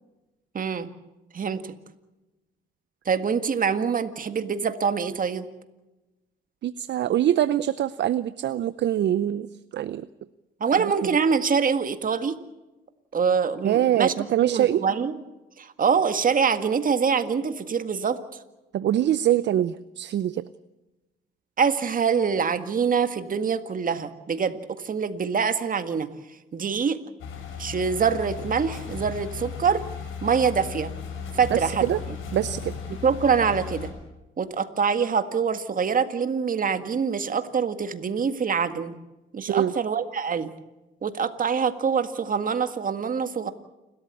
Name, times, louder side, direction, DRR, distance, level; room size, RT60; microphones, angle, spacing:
voice 1, 0.5-0.9 1.3-1.7 3.1-5.5 10.6-12.4 13.1-15.2 15.6-18.2 21.6-27.0 27.6-29.8 30.2-30.9 31.3-32.2 33.0-33.9 34.4-39.0 39.3-40.5 41.0-43.5, right 6 dB, 45° right, 10 dB, 1.9 m, -25 dB
voice 2, 6.6-9.5 9.7-10.1 13.6-14.8 18.7-20.4 31.5-32.0 32.3-32.7 39.5-39.7, right 11 dB, 60° right, 15 dB, 0.7 m, -24 dB
sound 1, 27.2-33.9, left 6 dB, 85° left, 5.9 m, -36 dB
29.0 x 13.5 x 8.4 m, 1.0 s
cardioid pair, 90°, 20 cm